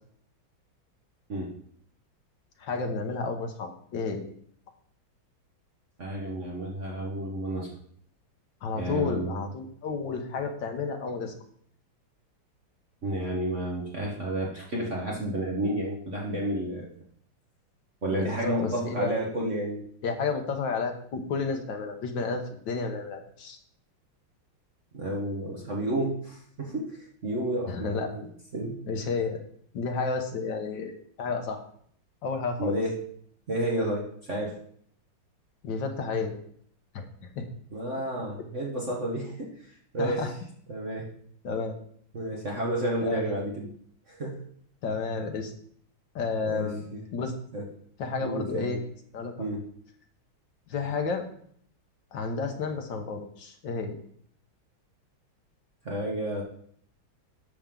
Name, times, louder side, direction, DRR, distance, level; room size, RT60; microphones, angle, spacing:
voice 1, 2.6-4.2 8.6-11.3 18.1-19.1 20.0-23.6 27.7-28.1 28.9-29.4 29.7-31.6 32.2-32.7 35.6-36.3 36.9-37.1 37.4-37.5 40.0-40.3 41.4-41.8 43.0-43.3 44.8-45.5 46.2-46.8 47.1-47.3 48.0-48.8 49.1-49.5 50.7-51.2 52.1-54.0, left 4 dB, 65° left, 5 dB, 1.7 m, -31 dB
voice 2, 6.0-7.7 8.8-9.4 13.0-16.9 18.0-19.8 24.9-28.3 28.5-28.8 32.6-33.0 33.5-34.6 37.7-40.3 40.7-41.1 42.1-43.7 44.1-44.4 46.4-47.0 47.5-47.7 48.2-48.8 49.4-49.6 55.8-56.4, right 1 dB, 40° right, -2 dB, 1.5 m, -31 dB
10.5 x 7.0 x 3.8 m, 0.62 s
omnidirectional pair, 2.3 m